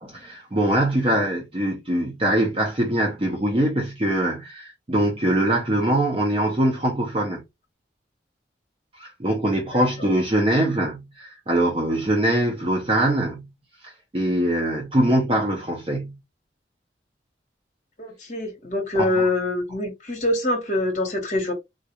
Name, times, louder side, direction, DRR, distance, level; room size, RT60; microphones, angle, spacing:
voice 1, 0.0-7.4 9.0-13.5 13.8-16.2 18.9-19.3, right 1 dB, 30° right, 0.6 m, -23 dB
voice 2, 18.0-21.5, left 2 dB, 40° left, 1.0 m, -24 dB
3.7 x 2.4 x 2.9 m
head